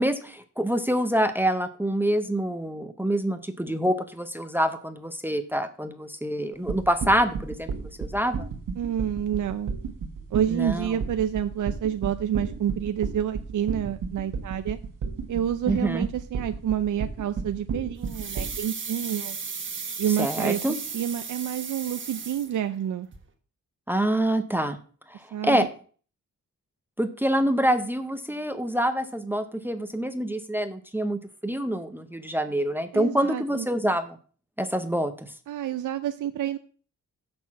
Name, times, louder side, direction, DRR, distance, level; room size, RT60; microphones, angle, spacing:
voice 1, 0.0-7.7 8.0-8.5 10.5-10.9 15.7-16.1 20.2-20.8 23.9-24.8 25.1-25.7 27.0-34.2 34.6-35.3, right 1 dB, 5° right, 9 dB, 0.6 m, -26 dB
sound 1, 6.7-18.6, right 5 dB, 85° right, 1.5 m, -32 dB
voice 2, 8.8-9.7 10.3-14.8 15.3-19.4 20.0-20.6 20.9-23.1 25.3-25.7 32.9-33.7 35.5-36.6, right 10 dB, 70° right, 9 dB, 0.6 m, -28 dB
sound 2, 18.0-22.9 23.1-23.2, right 5 dB, 35° right, 1.3 m, -35 dB
6.6 x 6.1 x 7.2 m, 0.41 s
wide cardioid pair, 165°, 32 cm